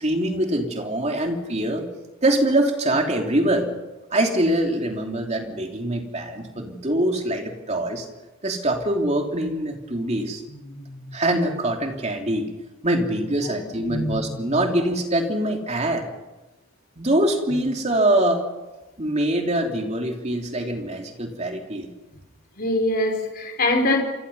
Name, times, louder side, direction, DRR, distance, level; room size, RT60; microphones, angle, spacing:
voice 1, 0.0-1.9 2.2-3.7 4.1-8.1 8.4-10.4 11.1-12.5 12.8-16.1 17.0-18.4 19.0-21.9, right 1 dB, 30° right, 2 dB, 3.1 m, -24 dB
voice 2, 10.5-11.1 13.4-14.2 14.5-14.7 17.5-17.7 22.6-24.0, left 1 dB, 45° left, 3 dB, 4.6 m, -25 dB
28.5 x 24.5 x 5.6 m, 1.1 s
head